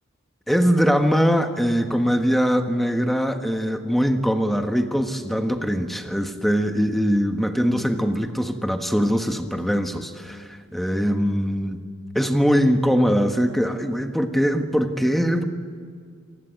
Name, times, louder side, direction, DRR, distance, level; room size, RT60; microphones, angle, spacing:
voice 1, 0.5-11.8 12.1-15.5, equal, ahead, 5 dB, 1.4 m, -22 dB
28.0 x 20.5 x 9.1 m, 2.1 s
head